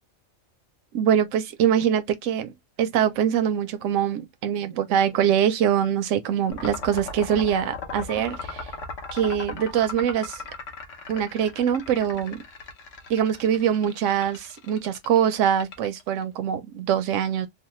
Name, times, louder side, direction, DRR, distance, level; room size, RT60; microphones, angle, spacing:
voice 1, 0.9-2.5 2.8-8.7 9.1-10.4 11.1-12.4 13.1-17.5, right 9 dB, 80° right, 0.9 m, -23 dB
sound 1, 6.5-16.2, left 4 dB, 75° left, 1.2 m, -37 dB
3.1 x 2.2 x 3.0 m
omnidirectional pair, 1.3 m